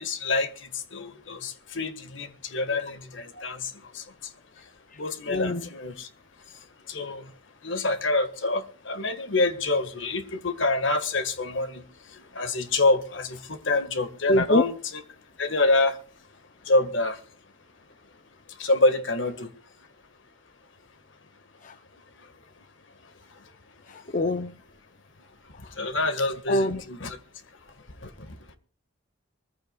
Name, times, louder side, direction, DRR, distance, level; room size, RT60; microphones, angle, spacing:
voice 1, 0.0-4.3 5.0-6.1 6.9-7.3 7.6-14.7 15.4-16.0 16.6-17.2 18.6-19.5 25.7-27.2 28.0-28.4, left 2 dB, 70° left, 1.8 m, -27 dB
voice 2, 5.3-5.7 14.3-14.6 21.6-21.7 23.9-24.5 26.5-26.8, left 1 dB, 40° left, 0.7 m, -24 dB
24.5 x 15.0 x 2.4 m
head